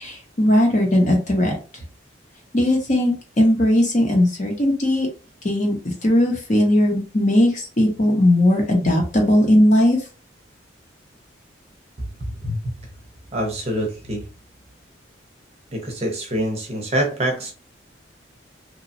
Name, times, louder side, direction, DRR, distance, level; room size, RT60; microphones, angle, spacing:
voice 1, 0.0-1.5 2.5-5.1 5.4-10.0, left 1 dB, 40° left, 0.8 m, -18 dB
voice 2, 12.0-12.6 13.3-14.3 15.7-17.5, equal, 35° right, 0.7 m, -25 dB
2.9 x 2.2 x 2.6 m
head